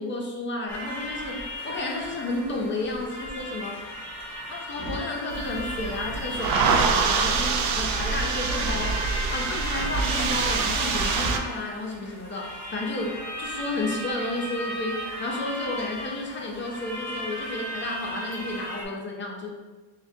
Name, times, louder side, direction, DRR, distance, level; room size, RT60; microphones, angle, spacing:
voice 1, 0.0-1.4 1.6-3.8 4.5-9.0 9.3-19.5, left 2 dB, 25° left, -1 dB, 0.4 m, -32 dB
sound 1, 0.7-18.9, left 1 dB, 5° left, 1.0 m, -36 dB
sound 2, 4.7-5.2 5.9-6.0 6.6-7.2 8.6-9.3 10.5-10.6 11.1-11.6 12.2-12.5, right 1 dB, 40° right, 1.2 m, -37 dB
sound 3, 5.3-11.4, right 5 dB, 75° right, 0.6 m, -25 dB
6.3 x 2.2 x 2.6 m, 1.3 s
cardioid pair, 135°, 48 cm